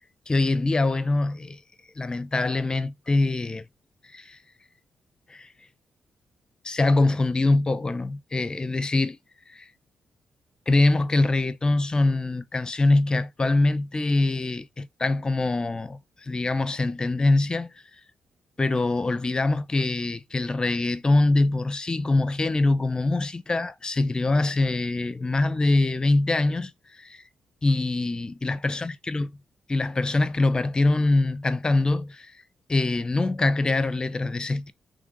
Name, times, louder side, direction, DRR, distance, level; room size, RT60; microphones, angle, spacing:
voice 1, 0.3-1.6 2.0-3.6 4.1-4.4 5.3-5.5 6.6-9.2 9.5-9.7 10.7-17.7 18.6-26.7 27.0-27.2 27.6-29.3 29.7-32.3 32.7-34.7, left 2 dB, 30° left, 0.7 m, -24 dB
6.1 x 3.3 x 5.4 m
cardioid pair, 65°, 3 cm